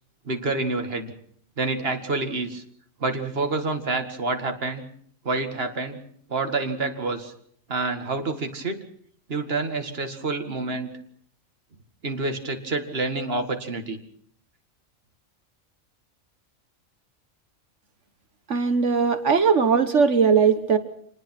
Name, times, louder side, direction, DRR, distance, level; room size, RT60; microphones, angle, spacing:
voice 1, 0.3-1.1 1.6-2.6 3.0-4.8 5.2-6.0 6.3-7.3 7.7-8.8 9.3-10.9 12.0-14.0, right 3 dB, 45° right, 6 dB, 2.3 m, -28 dB
voice 2, 18.5-20.8, right 6 dB, 60° right, 10 dB, 1.6 m, -19 dB
26.5 x 20.0 x 6.0 m, 0.63 s
omnidirectional pair, 1.4 m